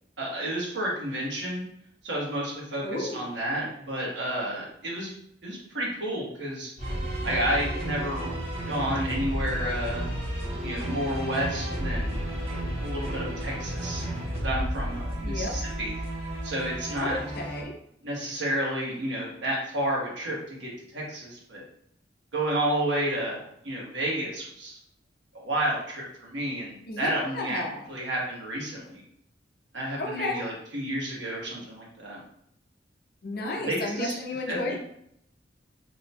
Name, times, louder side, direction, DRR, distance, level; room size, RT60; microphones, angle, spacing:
voice 1, 0.2-1.6 2.0-5.1 5.4-6.7 7.2-8.3 8.7-10.1 10.6-12.5 12.8-14.1 14.4-15.9 16.4-17.2 18.0-21.6 22.3-24.8 25.3-27.6 27.9-29.0 29.7-32.2 33.5-34.1 34.5-34.7, right 1 dB, 75° right, -3 dB, 1.2 m, -31 dB
voice 2, 2.8-3.2 15.2-15.6 17.0-17.8 26.9-27.9 30.0-30.4 33.2-34.7, left 2 dB, 55° left, 1 dB, 0.6 m, -33 dB
sound 1, 6.8-17.6, right 1 dB, 35° right, 0.8 m, -32 dB
3.0 x 2.2 x 4.1 m, 0.73 s
head